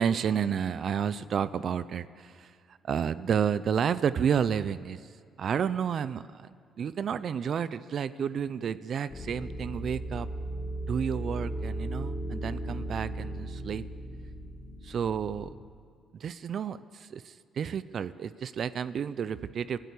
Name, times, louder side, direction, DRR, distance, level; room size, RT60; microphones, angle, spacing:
voice 1, 0.0-2.5 2.8-5.1 5.4-10.3 10.9-13.8 14.8-15.5 16.2-19.8, right 7 dB, 60° right, 15 dB, 0.6 m, -31 dB
sound 1, 9.1-15.5, right 1 dB, 50° left, 3.4 m, -36 dB
24.0 x 14.0 x 8.5 m, 2.2 s
cardioid pair, 90°, 0 cm